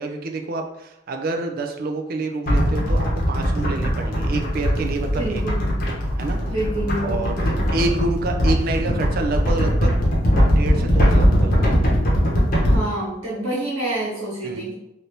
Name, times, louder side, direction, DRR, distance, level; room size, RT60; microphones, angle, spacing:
voice 1, 0.0-5.7 6.2-6.5 7.0-9.9 10.4-11.8 14.4-14.7, right 2 dB, 50° right, 4 dB, 0.3 m, -28 dB
sound 1, 2.5-12.7, equal, 45° left, 0.8 m, -20 dB
voice 2, 5.2-5.7 6.5-7.6 12.6-14.7, right 1 dB, 85° right, -7 dB, 1.2 m, -27 dB
3.3 x 2.6 x 2.8 m, 0.88 s
head